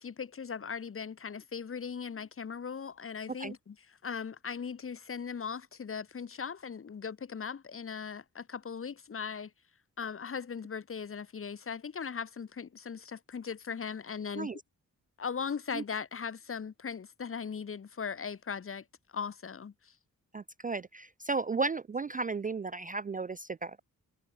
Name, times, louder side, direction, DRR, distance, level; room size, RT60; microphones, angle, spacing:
voice 1, 0.0-3.7 4.0-9.5 10.0-14.5 15.2-18.8 19.1-19.9, left 6 dB, 40° left, 0.7 m, -39 dB
voice 2, 20.3-23.8, right 4 dB, 25° right, 0.4 m, -34 dB
cardioid pair, 55°, 36 cm